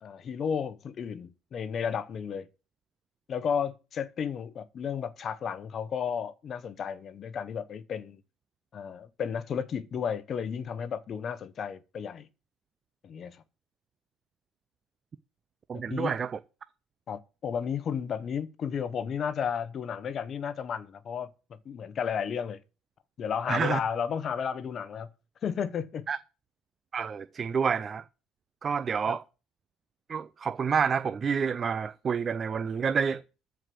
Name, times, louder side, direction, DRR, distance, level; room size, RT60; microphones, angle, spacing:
voice 1, 0.0-2.5 3.3-8.2 8.7-12.3 13.0-13.4 15.9-16.1 17.1-21.3 21.6-22.6 23.2-25.1 25.4-26.1 29.1-29.2, left 7 dB, 35° left, 1.0 m, -33 dB
voice 2, 15.7-16.3 23.5-23.8 26.1-26.2 26.9-28.0 28.6-29.2 30.1-33.2, right 6 dB, 30° right, 0.5 m, -28 dB
14.0 x 4.8 x 7.8 m
cardioid pair, 140°, 0 cm